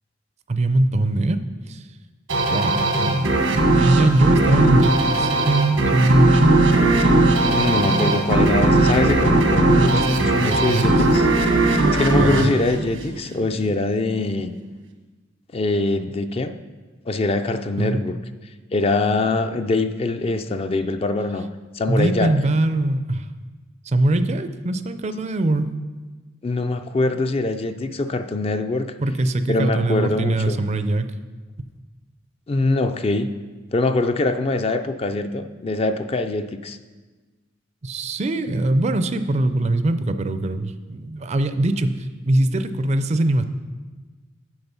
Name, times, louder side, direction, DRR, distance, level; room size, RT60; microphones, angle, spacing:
voice 1, 0.5-1.4 1.7-1.8 2.5-6.8 7.8-8.2 9.8-10.9 12.2-12.5 17.8-18.0 21.9-23.3 23.8-25.7 29.0-31.2 31.6-31.7 37.8-43.4, right 2 dB, 35° right, 10 dB, 0.4 m, -22 dB
sound 1, 2.3-13.5, right 2 dB, 90° right, 1.3 m, -18 dB
voice 2, 7.5-11.3 11.9-14.5 15.5-16.6 17.1-18.2 18.7-21.5 21.7-22.4 26.4-28.9 29.5-30.6 32.5-33.3 33.7-36.8, left 2 dB, 30° left, 9 dB, 0.4 m, -23 dB
7.9 x 7.4 x 5.5 m, 1.3 s
head